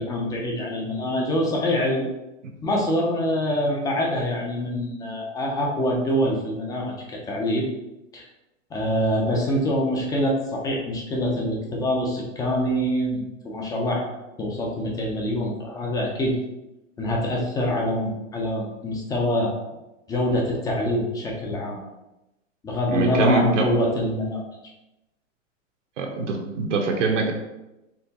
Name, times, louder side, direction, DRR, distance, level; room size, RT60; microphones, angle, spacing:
voice 1, 0.0-2.1 2.6-7.7 8.1-8.3 8.7-14.1 14.4-16.4 17.0-19.5 20.1-21.8 22.6-24.4, left 1 dB, 10° left, -1 dB, 0.4 m, -25 dB
voice 2, 22.9-23.7 26.0-27.3, right 4 dB, 70° right, 2 dB, 0.9 m, -23 dB
4.5 x 3.0 x 2.8 m, 0.95 s
hypercardioid pair, 130°, 38 cm